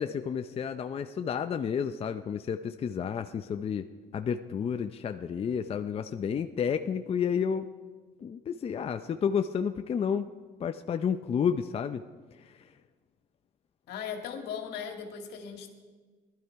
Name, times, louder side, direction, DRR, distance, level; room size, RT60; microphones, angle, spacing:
voice 1, 0.0-3.9 4.1-7.7 8.2-10.3 10.6-12.0 12.3-12.7, left 7 dB, 35° left, 8 dB, 0.6 m, -31 dB
voice 2, 13.9-15.7, left 7 dB, 75° left, 4 dB, 2.1 m, -38 dB
19.0 x 12.5 x 4.6 m, 1.4 s
cardioid pair, 110°, 17 cm